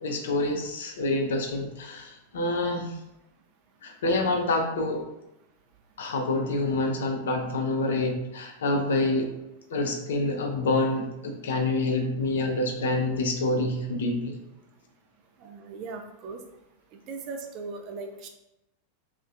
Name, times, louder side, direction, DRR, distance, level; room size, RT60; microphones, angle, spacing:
voice 1, 0.0-3.0 3.8-5.0 6.0-9.3 9.7-14.4, left 2 dB, 60° left, 3 dB, 0.4 m, -27 dB
voice 2, 15.4-16.4 16.9-18.3, right 4 dB, 40° right, 4 dB, 0.3 m, -38 dB
2.3 x 2.1 x 2.5 m, 0.90 s
figure-of-eight pair, 90°, 0 cm